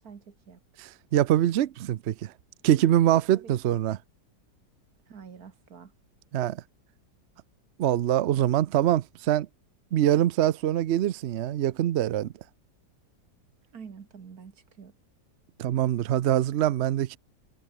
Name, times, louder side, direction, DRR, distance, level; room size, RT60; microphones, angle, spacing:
voice 1, 0.0-0.6 3.3-3.8 5.1-5.9 13.7-15.0, right 6 dB, 55° right, 2.2 m, -47 dB
voice 2, 0.8-2.3 2.6-4.0 6.3-6.6 7.8-9.5 9.9-12.3 15.6-17.2, right 12 dB, 80° right, 0.6 m, -24 dB
omnidirectional pair, 1.9 m